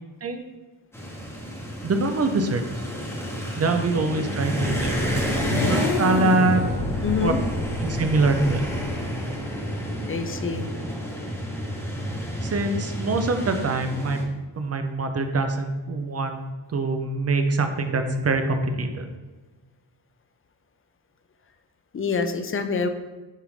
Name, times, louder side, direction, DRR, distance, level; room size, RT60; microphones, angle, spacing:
sound 1, 0.9-14.2, equal, 5° left, 0.9 m, -30 dB
voice 1, 1.8-2.6 3.6-6.7 7.2-7.3 7.8-8.7 12.4-14.2 14.6-16.4 16.7-19.1, right 3 dB, 35° right, 6 dB, 0.5 m, -24 dB
sound 2, 4.5-9.4, left 4 dB, 70° left, 0.6 m, -29 dB
voice 2, 7.0-7.4 10.1-10.7 21.9-22.9, left 5 dB, 30° left, 7 dB, 0.4 m, -26 dB
6.5 x 2.5 x 3.2 m, 1.2 s
cardioid pair, 75°, 43 cm